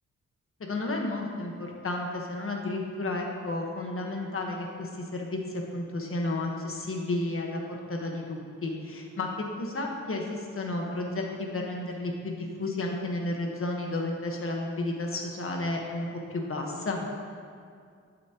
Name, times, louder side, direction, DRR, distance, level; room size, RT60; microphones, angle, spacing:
voice 1, 0.6-17.0, left 2 dB, 45° left, 1 dB, 1.3 m, -32 dB
11.0 x 8.5 x 3.0 m, 2.2 s
wide cardioid pair, 110°, 29 cm